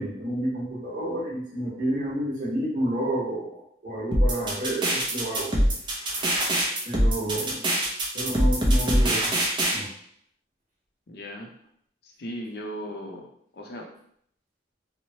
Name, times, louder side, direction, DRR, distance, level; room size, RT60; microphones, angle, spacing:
voice 1, 0.0-5.5 6.8-7.6 8.1-9.4 9.7-9.9, right 1 dB, 45° right, -6 dB, 0.9 m, -30 dB
sound 1, 4.1-9.8, right 1 dB, 25° right, 0.5 m, -23 dB
voice 2, 7.2-7.7 11.1-11.5 12.0-13.9, equal, 60° left, 1 dB, 0.5 m, -38 dB
2.9 x 2.1 x 2.7 m, 0.67 s
head